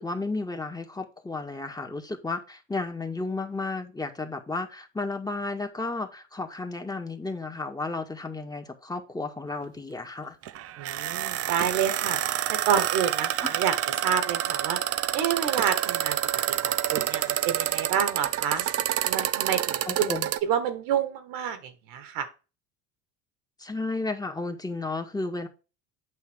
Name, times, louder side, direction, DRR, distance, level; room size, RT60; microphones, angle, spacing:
voice 1, 0.0-10.4 19.9-20.3 23.6-25.5, left 3 dB, 10° left, 4 dB, 1.8 m, -33 dB
sound 1, 10.4-20.4, right 12 dB, 40° right, 0.6 m, -28 dB
voice 2, 10.8-12.2 12.5-13.7 14.0-14.8 15.1-16.2 16.5-18.7 19.0-20.1 20.4-22.3, right 8 dB, 65° right, 9 dB, 1.8 m, -28 dB
8.6 x 5.7 x 3.7 m, 0.31 s
hypercardioid pair, 80°, 37 cm